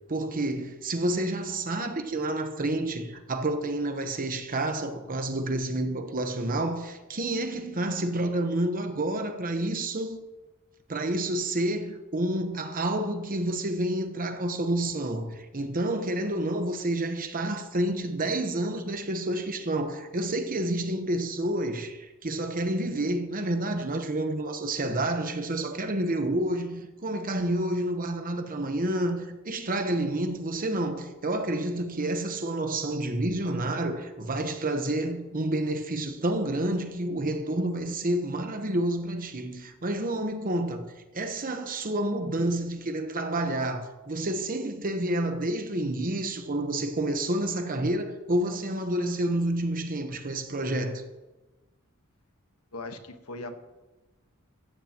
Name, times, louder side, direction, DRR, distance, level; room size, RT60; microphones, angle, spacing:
voice 1, 0.1-10.2 10.9-51.0, right 1 dB, 40° right, 1.0 m, -29 dB
voice 2, 52.7-53.6, left 2 dB, 85° left, 1.3 m, -39 dB
15.5 x 15.0 x 3.0 m
head